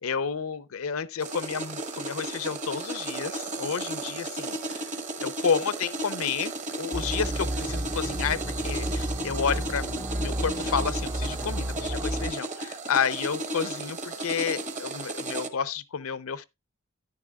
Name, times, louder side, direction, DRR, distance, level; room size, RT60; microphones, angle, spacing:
voice 1, 0.0-4.8 5.2-16.4, left 6 dB, 80° left, 0.6 m, -31 dB
sound 1, 1.2-15.5, right 2 dB, 35° right, 1.0 m, -34 dB
sound 2, 6.9-12.3, right 1 dB, 15° right, 0.4 m, -32 dB
10.5 x 9.8 x 2.3 m
head